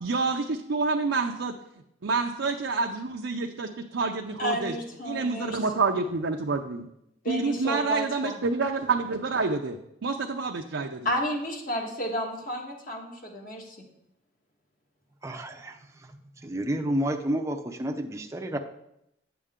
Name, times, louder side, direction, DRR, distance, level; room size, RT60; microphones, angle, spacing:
voice 1, 0.0-1.5 2.0-4.7 5.0-6.8 7.3-11.1, right 4 dB, 75° right, 2 dB, 0.6 m, -28 dB
voice 2, 4.4-5.6 7.2-8.3 11.0-13.8, equal, 45° left, 1 dB, 1.5 m, -31 dB
voice 3, 15.2-15.7 16.4-18.6, right 1 dB, 15° right, 3 dB, 0.6 m, -30 dB
9.3 x 6.9 x 3.7 m, 0.80 s
head